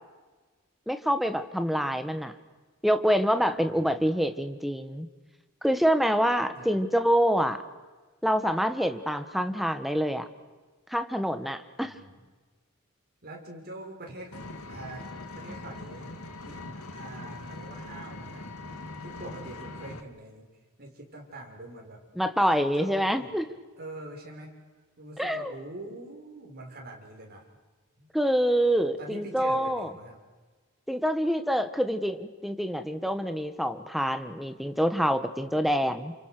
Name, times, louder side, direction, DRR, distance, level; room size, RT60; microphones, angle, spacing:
voice 1, 0.9-2.3 2.8-5.1 5.6-7.6 8.2-10.3 10.9-11.9 22.1-23.4 25.2-25.5 28.1-29.9 30.9-36.1, equal, ahead, 8 dB, 1.5 m, -26 dB
voice 2, 3.6-4.1 6.5-6.7 11.8-12.2 13.2-14.4 14.7-16.1 16.4-16.6 16.9-18.5 19.0-20.5 20.8-22.0 22.5-23.4 23.8-24.5 25.0-27.4 28.0-28.1 29.0-30.2 34.3-34.4, right 2 dB, 45° right, 0 dB, 6.4 m, -44 dB
Vehicle, 14.3-20.0, left 2 dB, 75° left, 2.2 m, -41 dB
30.0 x 28.5 x 6.8 m, 1.3 s
head